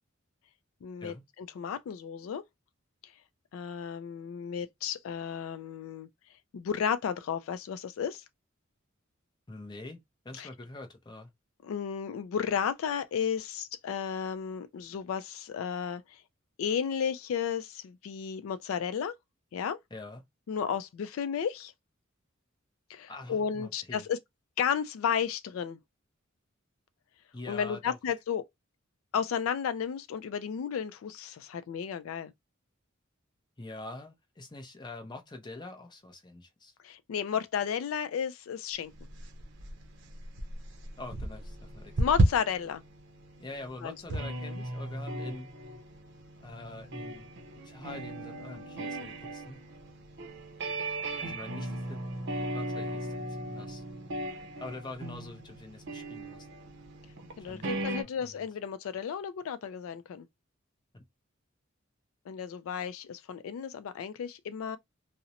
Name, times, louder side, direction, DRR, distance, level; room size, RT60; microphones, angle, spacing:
voice 1, 0.8-2.4 3.5-6.1 6.5-8.2 10.4-10.5 11.6-16.2 16.6-19.1 19.5-19.8 20.5-21.7 22.9-24.2 24.6-25.8 27.5-28.4 29.1-32.3 36.8-38.9 42.0-42.8 43.8-43.9 57.4-60.3 62.3-64.8, left 7 dB, 80° left, 0.3 m, -33 dB
voice 2, 9.5-10.0 10.2-11.3 19.9-20.2 23.1-24.1 27.3-28.0 33.6-36.7 41.0-41.9 43.4-45.5 46.4-47.3 47.6-49.6 51.2-52.0 52.4-53.8 54.6-56.5 57.4-57.9 58.2-58.3 60.9-61.0, left 2 dB, 20° left, 0.6 m, -45 dB
sound 1, 38.9-58.0, right 1 dB, 60° right, 0.6 m, -35 dB
2.5 x 2.0 x 2.7 m
head